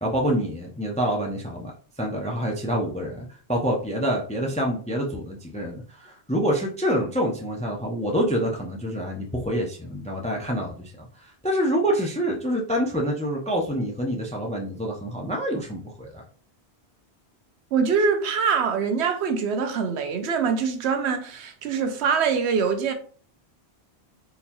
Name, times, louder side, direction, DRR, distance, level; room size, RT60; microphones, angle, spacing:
voice 1, 0.0-1.7 2.0-11.1 11.4-16.2, equal, 10° left, 0.4 m, -26 dB
voice 2, 17.7-22.9, right 6 dB, 90° right, 0.9 m, -24 dB
3.8 x 2.9 x 2.6 m
omnidirectional pair, 1.1 m